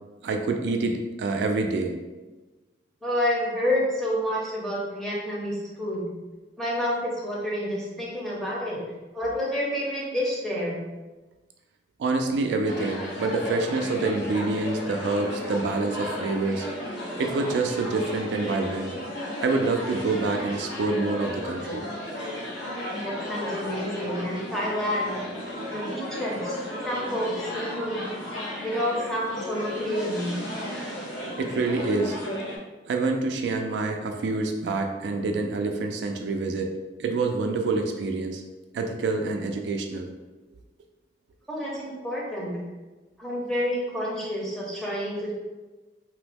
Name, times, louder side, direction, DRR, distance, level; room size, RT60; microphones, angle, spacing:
voice 1, 0.2-2.0 12.0-16.7 17.2-18.9 19.4-21.9 31.4-32.2 32.9-36.7 37.0-38.4 38.7-40.1, right 3 dB, 75° right, 3 dB, 0.3 m, -27 dB
voice 2, 3.0-6.1 6.6-8.8 9.1-10.8 22.9-25.2 25.7-28.1 28.6-30.4 41.5-42.6 43.2-45.3, equal, ahead, -5 dB, 0.6 m, -29 dB
sound 1, 12.6-32.6, left 1 dB, 80° left, 0.7 m, -34 dB
2.9 x 2.0 x 3.3 m, 1.2 s
head